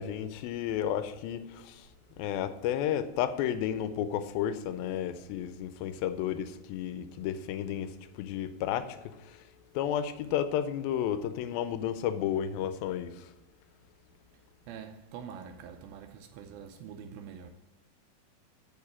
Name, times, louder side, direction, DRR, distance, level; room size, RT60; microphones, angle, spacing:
voice 1, 0.0-1.9 2.2-7.9 8.2-9.0 9.3-9.4 9.8-13.3, left 10 dB, 85° left, 2.4 m, -32 dB
voice 2, 14.7-17.5, right 7 dB, 85° right, 2.5 m, -45 dB
9.6 x 5.1 x 5.8 m
omnidirectional pair, 4.3 m